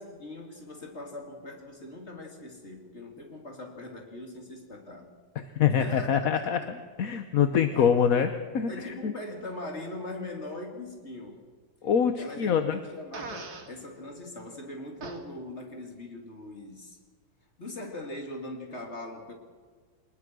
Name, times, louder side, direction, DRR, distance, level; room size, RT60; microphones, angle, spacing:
voice 1, 0.0-5.1 5.8-6.7 7.7-8.2 8.7-11.4 12.1-17.0 17.6-19.3, left 1 dB, 35° left, 2 dB, 3.4 m, -41 dB
voice 2, 5.3-6.6 7.0-9.1 11.8-12.8, left 7 dB, 55° left, 9 dB, 1.2 m, -25 dB
Fart, 13.1-13.7 15.0-15.2, right 3 dB, 55° right, 2.6 m, -39 dB
24.5 x 20.5 x 6.2 m, 1.5 s
omnidirectional pair, 2.1 m